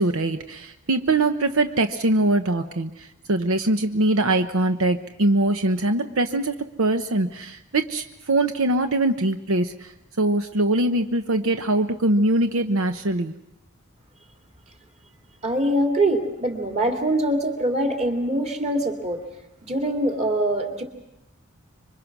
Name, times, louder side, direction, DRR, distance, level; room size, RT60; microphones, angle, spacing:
voice 1, 0.0-9.9 10.2-13.3, right 2 dB, 85° right, 8 dB, 1.0 m, -22 dB
voice 2, 15.4-19.2 19.6-20.8, right 1 dB, 35° right, 3 dB, 2.9 m, -23 dB
26.0 x 24.0 x 6.1 m, 0.87 s
head